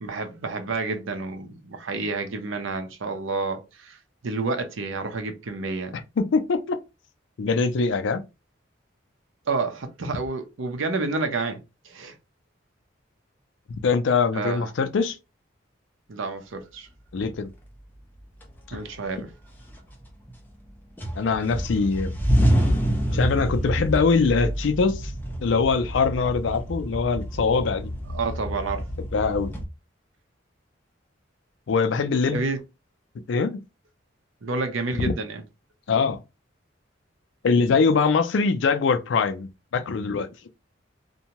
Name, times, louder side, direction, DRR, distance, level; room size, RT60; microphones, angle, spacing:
voice 1, 0.0-4.0 4.2-6.0 9.5-11.6 11.8-12.1 14.3-14.7 16.1-16.9 18.7-19.3 28.1-28.8 32.3-32.6 34.4-35.4, right 3 dB, 85° right, 0.7 m, -29 dB
voice 2, 6.2-6.8 7.4-8.2 13.7-15.2 17.1-17.5 18.7-18.8 21.2-22.1 23.1-25.1 25.4-27.9 29.1-29.5 31.7-32.4 33.3-33.6 35.0-35.1 35.9-36.2 37.4-40.3, left 4 dB, 70° left, 0.4 m, -23 dB
sound 1, 17.8-17.9 18.4-19.1 19.5-20.7 21.0-29.7, equal, 10° left, 0.5 m, -27 dB
2.7 x 2.2 x 2.9 m
head